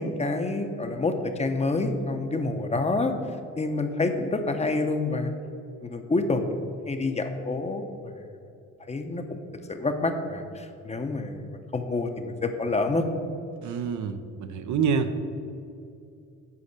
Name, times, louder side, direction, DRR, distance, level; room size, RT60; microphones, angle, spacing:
voice 1, 0.0-3.1 3.6-5.3 5.8-6.6 6.9-8.1 8.9-9.4 9.7-13.1, left 3 dB, 20° left, 6 dB, 0.7 m, -28 dB
voice 2, 13.6-15.1, right 6 dB, 75° right, 8 dB, 0.7 m, -27 dB
8.5 x 4.2 x 6.6 m, 2.5 s
cardioid pair, 90°, 30 cm